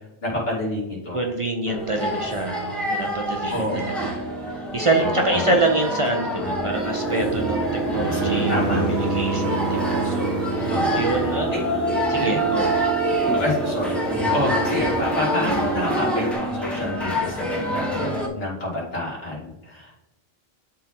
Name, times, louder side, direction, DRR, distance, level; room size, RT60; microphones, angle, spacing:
voice 1, 0.2-1.2 3.5-3.9 5.0-5.4 8.1-8.2 8.5-8.8 10.7-11.6 12.2-12.4 13.3-19.9, left 1 dB, 70° left, -6 dB, 2.7 m, -28 dB
voice 2, 1.1-4.2 4.7-12.8, right 2 dB, 35° right, 1 dB, 0.7 m, -26 dB
sound 1, 1.7-18.3, right 1 dB, ahead, 1.0 m, -26 dB
sound 2, 6.1-11.6, right 1 dB, 50° left, 1.3 m, -30 dB
sound 3, 6.7-16.3, right 5 dB, 85° right, 0.9 m, -30 dB
11.0 x 3.8 x 2.9 m, 0.97 s
omnidirectional pair, 1.0 m